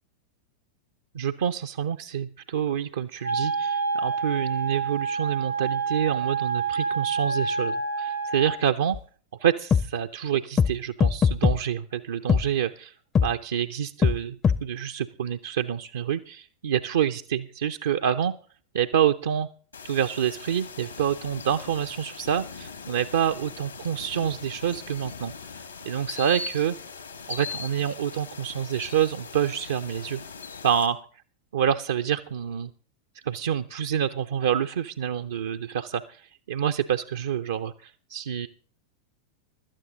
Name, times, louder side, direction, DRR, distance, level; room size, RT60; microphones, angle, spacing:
voice 1, 1.1-9.0 9.4-12.9 13.2-18.3 18.7-19.5 19.8-26.8 27.3-30.2 30.6-31.0 31.5-32.7 33.2-38.5, right 9 dB, 60° right, 6 dB, 0.5 m, -27 dB
Wind instrument woodwind instrument, 3.2-8.6, right 5 dB, 85° right, 1.9 m, -28 dB
sound 1, 8.9-9.0 9.7-9.8 10.6-10.7 11.0-11.6 12.3-12.4 13.1-13.3 14.0-14.2 14.4-14.6, left 6 dB, 20° left, 0.5 m, -19 dB
sound 2, 19.7-30.9, left 5 dB, 80° left, 1.9 m, -40 dB
16.5 x 12.0 x 3.9 m, 0.42 s
figure-of-eight pair, 90°, 0 cm